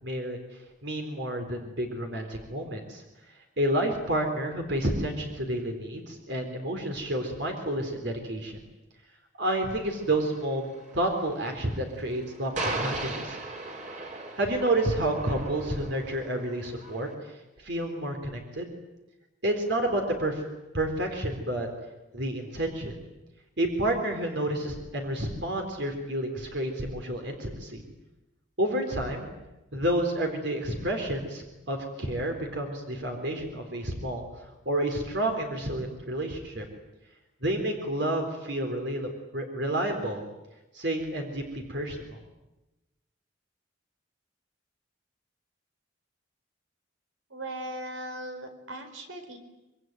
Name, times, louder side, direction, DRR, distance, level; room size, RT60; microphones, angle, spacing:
voice 1, 0.0-3.0 3.6-8.6 9.4-13.4 14.4-18.7 19.4-20.4 20.7-21.7 22.1-22.9 23.6-27.8 28.6-29.3 29.7-36.7 37.4-40.2 40.7-42.2, right 1 dB, 65° right, 3 dB, 3.9 m, -30 dB
sound 1, 9.7-17.1, right 2 dB, 40° right, 4.5 m, -38 dB
voice 2, 47.3-49.4, right 1 dB, 90° right, 7 dB, 4.5 m, -38 dB
25.5 x 24.0 x 9.3 m, 0.99 s
head